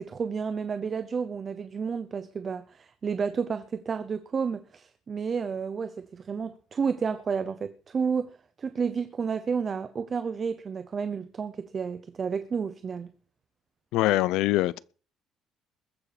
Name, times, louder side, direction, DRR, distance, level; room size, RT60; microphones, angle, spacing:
voice 1, 0.0-13.1, right 6 dB, 25° right, 0.7 m, -31 dB
voice 2, 13.9-14.8, left 17 dB, 80° left, 0.6 m, -23 dB
21.0 x 7.3 x 5.1 m
cardioid pair, 165°, 0 cm